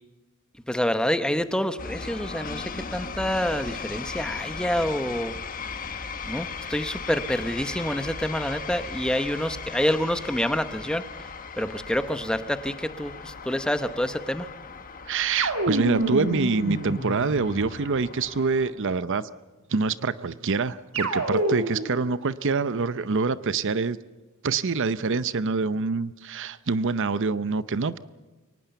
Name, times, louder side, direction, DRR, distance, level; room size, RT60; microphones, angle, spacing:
voice 1, 0.7-5.4 6.3-11.1 11.6-14.5, equal, 5° left, 10 dB, 0.9 m, -27 dB
sound 1, 1.8-18.7, left 5 dB, 40° left, 1.3 m, -37 dB
voice 2, 15.1-19.3 19.7-24.0 24.4-28.0, right 4 dB, 60° right, 15 dB, 0.7 m, -26 dB
sound 2, 15.4-17.8 20.9-22.0, right 1 dB, 90° right, 2.9 m, -27 dB
23.5 x 19.0 x 7.0 m, 1.2 s
head